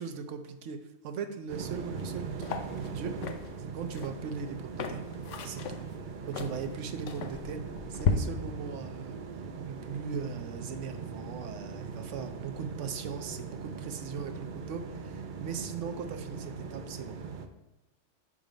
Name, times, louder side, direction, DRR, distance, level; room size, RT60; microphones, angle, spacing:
voice 1, 0.0-3.1 3.7-5.0 5.4-5.8 6.2-7.6 7.9-9.2 9.6-17.2, right 6 dB, 80° right, 7 dB, 1.0 m, -39 dB
sound 1, 1.5-17.5, right 5 dB, 55° right, 0.6 m, -40 dB
sound 2, 2.0-2.1 2.4-8.1, left 7 dB, 80° left, 1.0 m, -35 dB
6.4 x 3.7 x 5.1 m, 0.99 s
omnidirectional pair, 1.2 m